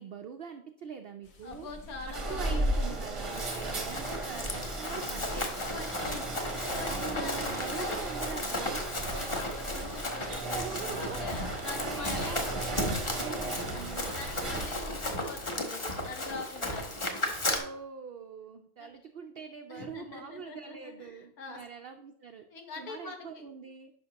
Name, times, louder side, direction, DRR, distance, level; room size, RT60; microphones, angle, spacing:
voice 1, 0.0-1.7 2.1-5.5 6.9-8.9 10.5-12.8 13.0-14.2 16.9-22.5 22.8-23.9, right 6 dB, 80° right, 6 dB, 0.5 m, -43 dB
sound 1, 1.2-15.5, left 2 dB, 50° left, 1.1 m, -51 dB
voice 2, 1.4-3.0 5.7-8.0 8.9-12.4 13.0-13.2 13.6-13.8 14.1-16.8 18.8-18.9 19.7-21.6 22.5-23.3, left 3 dB, 70° left, 3 dB, 1.7 m, -44 dB
sound 2, 1.5-15.0, right 2 dB, 30° right, 0.6 m, -36 dB
Run, 3.0-17.6, left 1 dB, 25° left, 0.8 m, -35 dB
9.7 x 5.7 x 2.9 m, 0.66 s
omnidirectional pair, 1.6 m